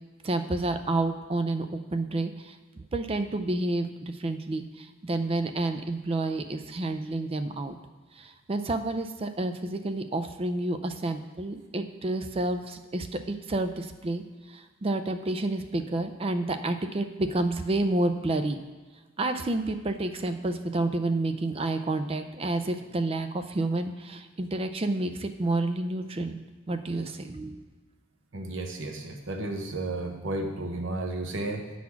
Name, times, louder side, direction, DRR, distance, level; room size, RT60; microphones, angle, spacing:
voice 1, 0.2-7.8 8.1-18.6 19.2-26.4 26.7-27.7, right 2 dB, 30° right, 8 dB, 0.5 m, -29 dB
voice 2, 28.3-31.7, right 2 dB, 70° right, 4 dB, 1.0 m, -33 dB
9.7 x 4.2 x 5.8 m, 1.3 s
head